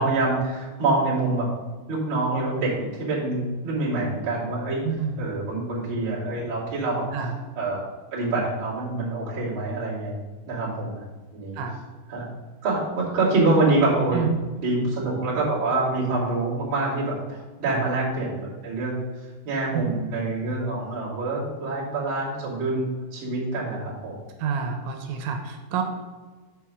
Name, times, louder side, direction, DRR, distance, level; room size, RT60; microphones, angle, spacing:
voice 1, 0.0-1.5 1.9-4.8 5.2-7.1 7.6-7.8 8.1-10.2 10.5-11.0 11.3-11.6 12.1-12.3 12.6-14.2 14.6-19.0 19.4-24.1, right 2 dB, 35° right, -7 dB, 2.5 m, -26 dB
voice 2, 4.8-5.3 7.1-7.4 11.5-11.8 14.1-14.3 17.6-17.9 19.7-19.9 24.4-25.8, right 7 dB, 85° right, 4 dB, 3.0 m, -28 dB
7.1 x 4.8 x 6.1 m, 1.3 s
omnidirectional pair, 5.2 m